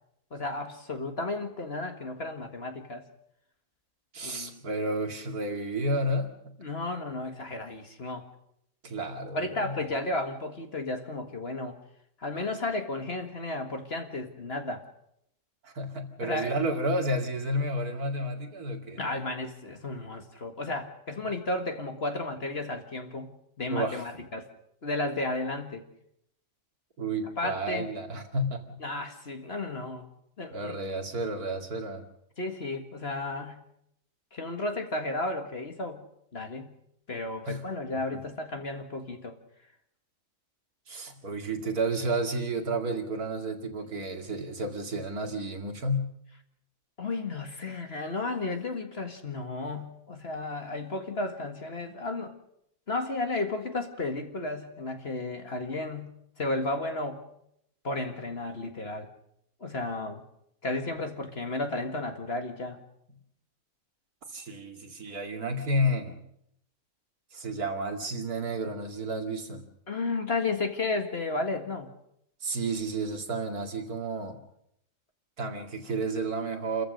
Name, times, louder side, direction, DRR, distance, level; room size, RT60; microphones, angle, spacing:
voice 1, 0.3-3.0 4.2-4.6 6.6-8.3 9.3-11.8 12.2-14.8 16.2-16.5 19.0-24.5 24.8-25.8 27.4-27.9 28.8-30.1 30.4-30.8 32.4-33.6 34.3-36.1 36.3-36.7 37.1-39.4 47.0-52.3 52.9-57.2 57.8-59.1 59.6-60.2 60.6-62.8 69.9-71.9, left 2 dB, 45° left, 5 dB, 2.0 m, -33 dB
voice 2, 4.1-6.5 8.8-9.8 15.6-19.0 23.7-24.0 27.0-28.8 30.5-32.0 37.5-37.6 40.9-46.1 64.3-66.1 67.3-69.6 72.4-74.4 75.4-76.8, right 1 dB, 80° right, 4 dB, 2.8 m, -31 dB
29.0 x 14.5 x 6.5 m, 0.75 s
omnidirectional pair, 1.6 m